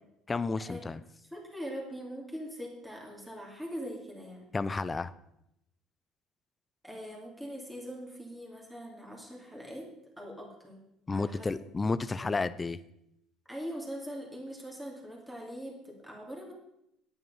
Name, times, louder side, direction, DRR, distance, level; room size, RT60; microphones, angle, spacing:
voice 1, 0.3-1.0 4.5-5.1 11.1-12.8, left 3 dB, 20° left, 15 dB, 0.5 m, -31 dB
voice 2, 1.3-4.4 6.8-9.9 10.2-10.8 11.1-11.5 12.2-12.5 13.5-16.5, equal, ahead, -2 dB, 2.5 m, -42 dB
9.4 x 9.1 x 5.5 m, 0.80 s
cardioid pair, 115°, 0 cm